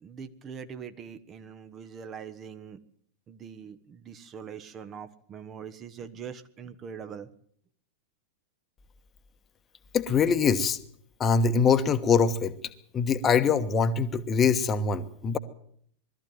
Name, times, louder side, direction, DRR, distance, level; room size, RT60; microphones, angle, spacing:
voice 1, 0.0-2.8 3.3-7.3, right 7 dB, 25° right, 10 dB, 1.4 m, -42 dB
voice 2, 9.9-10.8 11.2-12.5 12.9-15.4, left 6 dB, 25° left, 11 dB, 1.3 m, -23 dB
21.0 x 13.5 x 9.5 m, 0.64 s
figure-of-eight pair, 90°, 0 cm